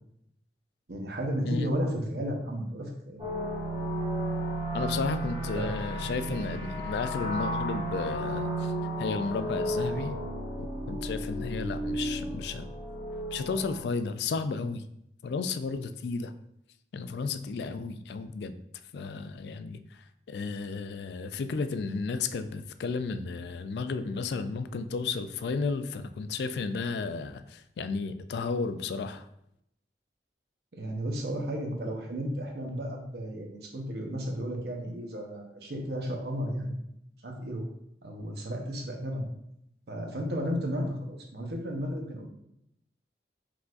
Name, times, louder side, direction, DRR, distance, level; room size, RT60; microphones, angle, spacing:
voice 1, 0.9-3.2 5.5-5.7 30.7-36.8 37.2-37.6 38.0-39.3 39.9-42.3, equal, 65° right, 1 dB, 0.9 m, -33 dB
sound 1, 3.2-13.9, right 1 dB, 30° right, 1.4 m, -33 dB
voice 2, 4.7-8.7 9.0-10.2 10.6-12.7 13.3-14.8 15.2-16.3 16.9-18.5 18.9-19.8 20.3-29.3, left 4 dB, 70° left, 10 dB, 0.3 m, -33 dB
4.7 x 3.8 x 2.5 m, 0.77 s
head